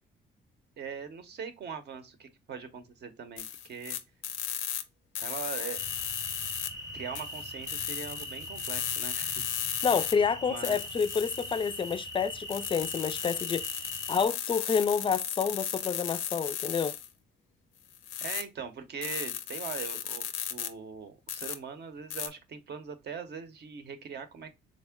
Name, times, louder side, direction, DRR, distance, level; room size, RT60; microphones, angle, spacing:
voice 1, 0.8-4.0 5.2-5.8 6.9-9.4 10.5-10.8 18.2-24.6, right 6 dB, 55° right, 0.7 m, -41 dB
sound 1, 3.4-4.8 5.2-6.7 7.2-10.1 10.6-17.1 17.9-18.4 19.0-20.7 21.3-21.6 22.1-22.3, left 10 dB, 80° left, 0.5 m, -35 dB
sound 2, 5.7-14.3, equal, 20° right, 0.7 m, -41 dB
voice 2, 9.8-13.7 14.1-16.9, left 6 dB, 25° left, 0.3 m, -29 dB
3.6 x 2.1 x 3.4 m
cardioid pair, 90°, 20 cm